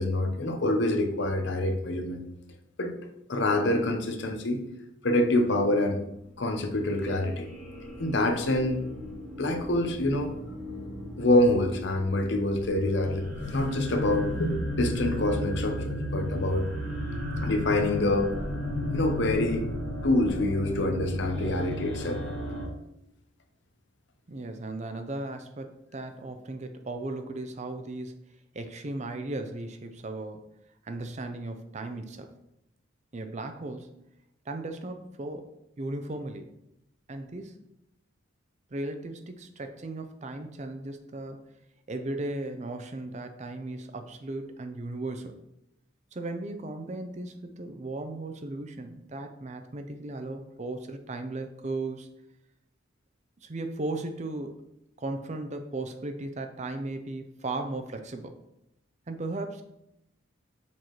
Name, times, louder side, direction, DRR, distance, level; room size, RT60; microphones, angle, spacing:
voice 1, 0.0-2.2 2.8-3.0 3.3-4.6 5.0-6.0 6.4-7.5 8.0-8.9 9.3-10.3 11.2-16.7 17.4-18.4 18.9-19.7 20.0-22.2, left 1 dB, 60° left, 5 dB, 0.7 m, -26 dB
sound 1, 6.6-22.7, left 1 dB, 10° left, 1.7 m, -35 dB
voice 2, 24.3-28.2 28.5-30.5 30.8-32.3 33.1-34.0 34.5-36.5 37.1-37.6 38.7-41.4 41.9-45.4 46.1-52.1 53.4-54.6 55.0-58.4 59.1-59.6, right 2 dB, 35° right, 7 dB, 0.5 m, -36 dB
7.0 x 4.5 x 3.0 m, 0.82 s
head